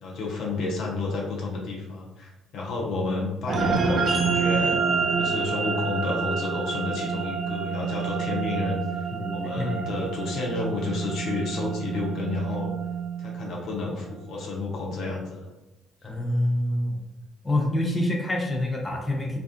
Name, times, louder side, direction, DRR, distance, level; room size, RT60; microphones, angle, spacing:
voice 1, 0.0-4.8 5.2-9.1 9.3-12.7 13.2-15.5, left 3 dB, 60° left, -2 dB, 0.6 m, -31 dB
sound 1, 3.5-14.1, right 5 dB, 45° right, 0.4 m, -28 dB
voice 2, 9.1-9.9 16.0-17.0 17.4-19.4, left 1 dB, 25° left, 0 dB, 0.6 m, -26 dB
2.5 x 2.3 x 2.4 m, 0.99 s
hypercardioid pair, 50°, 0 cm